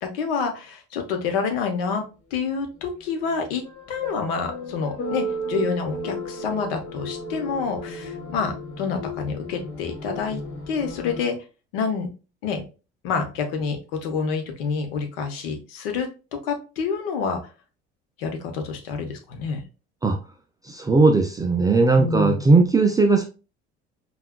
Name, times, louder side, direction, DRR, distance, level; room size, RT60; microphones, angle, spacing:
voice 1, 0.0-2.0 2.3-3.6 3.9-11.4 11.7-12.1 12.4-12.6 13.0-17.4 18.2-19.6 22.0-22.4, left 5 dB, 60° left, 5 dB, 0.9 m, -28 dB
sound 1, 3.3-11.2, equal, 35° left, 2.0 m, -34 dB
voice 2, 20.7-23.2, right 3 dB, 10° right, 4 dB, 0.3 m, -18 dB
5.5 x 2.3 x 2.2 m, 0.32 s
figure-of-eight pair, 60°, 33 cm